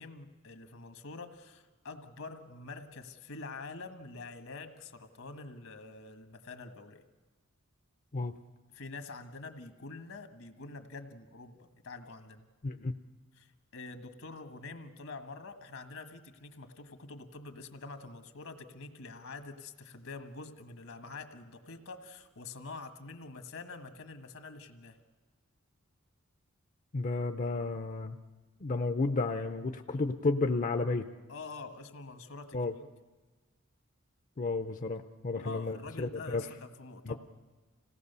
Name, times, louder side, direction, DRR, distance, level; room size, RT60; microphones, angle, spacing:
voice 1, 0.0-7.0 8.7-12.5 13.3-25.0 31.3-32.6 35.3-37.2, left 3 dB, 75° left, 7 dB, 1.6 m, -46 dB
voice 2, 26.9-28.2 28.6-31.1 32.5-32.7 34.4-36.4 37.1-37.2, left 3 dB, 40° left, 7 dB, 0.6 m, -32 dB
26.5 x 17.5 x 6.8 m, 1.3 s
head